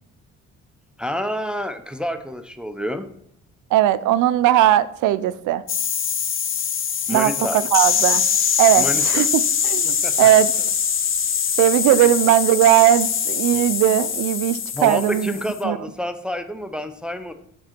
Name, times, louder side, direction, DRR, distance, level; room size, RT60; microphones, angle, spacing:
voice 1, 1.0-3.1 7.1-7.6 8.7-9.2 9.8-10.3 12.0-12.1 14.7-17.3, equal, 5° right, 8 dB, 0.5 m, -28 dB
voice 2, 3.7-5.6 7.1-8.2 8.6-9.3 9.6-10.5 11.6-15.4 15.6-15.8, right 13 dB, 80° right, 16 dB, 0.5 m, -18 dB
sound 1, 5.7-15.6, left 7 dB, 45° left, 0.7 m, -23 dB
7.4 x 3.7 x 4.4 m, 0.70 s
cardioid pair, 90°, 30 cm